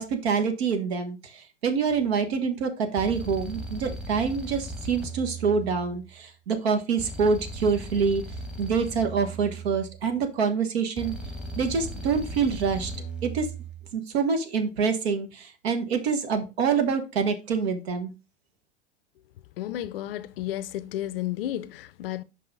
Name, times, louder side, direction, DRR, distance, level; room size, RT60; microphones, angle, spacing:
voice 1, 0.0-8.2 8.6-11.1 11.6-12.9 13.2-13.5 13.9-18.1, right 5 dB, 60° right, 1.4 m, -26 dB
sound 1, 1.9-2.2 3.0-6.2 7.0-10.2 11.0-13.9, right 1 dB, 5° right, 1.2 m, -38 dB
voice 2, 19.6-22.2, left 13 dB, 55° left, 0.5 m, -32 dB
5.5 x 5.5 x 3.6 m
figure-of-eight pair, 95°, 35 cm